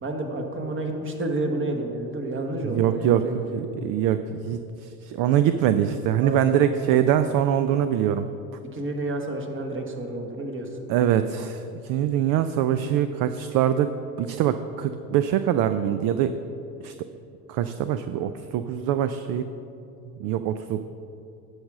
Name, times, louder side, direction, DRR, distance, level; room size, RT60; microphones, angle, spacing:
voice 1, 0.0-3.6 6.2-6.5 8.7-10.7, right 2 dB, 25° right, 3 dB, 1.4 m, -30 dB
voice 2, 2.6-8.3 10.9-16.3 16.8-16.9 17.5-19.5 20.2-20.8, right 10 dB, 50° right, 11 dB, 0.5 m, -23 dB
10.5 x 4.9 x 6.2 m, 2.8 s
hypercardioid pair, 90°, 45 cm